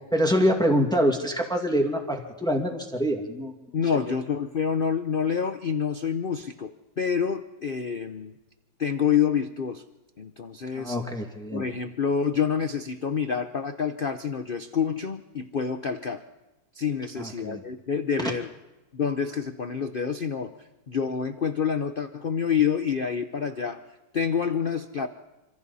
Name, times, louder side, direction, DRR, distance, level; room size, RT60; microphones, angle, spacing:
voice 1, 0.1-3.5 10.7-11.6 17.2-17.6 18.2-18.3, equal, ahead, 2 dB, 2.0 m, -25 dB
voice 2, 3.7-8.3 8.8-9.8 10.2-11.0 11.5-16.2 16.7-18.5 18.9-20.5 20.9-23.8 24.1-25.1, left 7 dB, 70° left, 8 dB, 0.5 m, -27 dB
26.5 x 26.0 x 4.2 m, 1.1 s
omnidirectional pair, 2.1 m